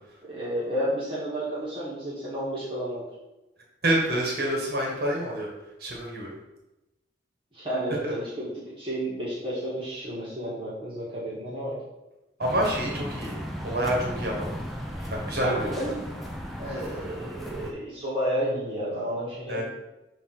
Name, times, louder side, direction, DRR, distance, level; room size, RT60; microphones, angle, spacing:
voice 1, 0.3-3.0 7.5-8.5 8.8-11.8 14.9-15.1 15.4-16.0 16.6-19.6, right 1 dB, 30° right, -9 dB, 1.7 m, -31 dB
voice 2, 3.8-5.5 5.8-6.3 8.0-8.1 12.4-13.4 13.6-14.6 15.1-15.7 19.5-19.6, right 1 dB, 55° right, -2 dB, 1.4 m, -27 dB
sound 1, 12.4-17.7, equal, ahead, 0.8 m, -35 dB
7.1 x 2.8 x 5.8 m, 0.99 s
head